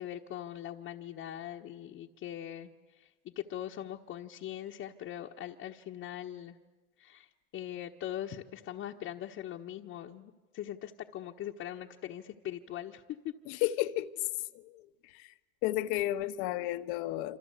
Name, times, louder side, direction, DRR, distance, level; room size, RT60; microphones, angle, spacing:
voice 1, 0.0-2.7 3.0-6.6 7.0-7.3 7.5-13.3, left 11 dB, 45° left, 1.4 m, -41 dB
voice 2, 13.5-14.1 14.5-15.3 15.6-17.4, left 15 dB, 65° left, 1.4 m, -33 dB
27.0 x 26.5 x 8.2 m
supercardioid pair, 110°, 31 cm